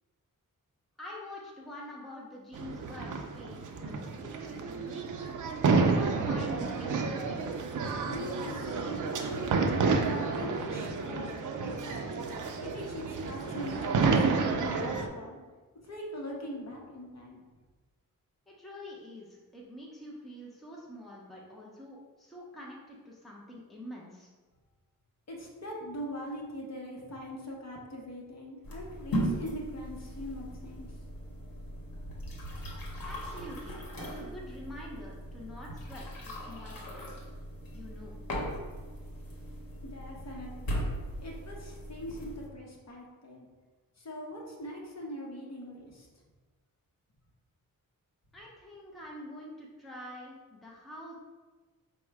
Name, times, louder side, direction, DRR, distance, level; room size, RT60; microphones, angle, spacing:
voice 1, 1.0-5.1 5.7-7.0 18.5-24.3 33.0-37.3 37.7-38.2 48.3-51.1, left 1 dB, ahead, -3 dB, 0.6 m, -46 dB
sound 1, 2.5-15.1, right 4 dB, 60° right, 0.5 m, -30 dB
voice 2, 8.0-9.6 10.0-11.3 11.6-12.0 12.6-15.4 15.8-17.4 25.3-31.0 39.8-40.9 41.2-43.5 44.0-46.1, equal, 50° left, -2 dB, 0.9 m, -41 dB
sound 2, 28.6-42.5, equal, 80° left, 0.9 m, -38 dB
4.6 x 2.1 x 4.5 m, 1.3 s
wide cardioid pair, 140°, 34 cm